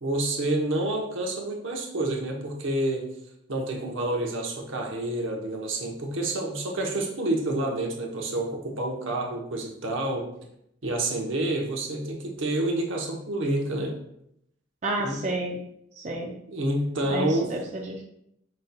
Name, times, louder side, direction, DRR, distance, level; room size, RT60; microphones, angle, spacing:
voice 1, 0.0-3.1 3.5-10.3 10.8-13.9 15.0-15.2 16.2-17.5, right 1 dB, 75° right, 1 dB, 0.9 m, -28 dB
voice 2, 14.8-15.6 16.0-16.3 17.0-18.0, right 2 dB, 35° right, -1 dB, 0.5 m, -30 dB
5.2 x 4.1 x 2.2 m, 0.76 s
head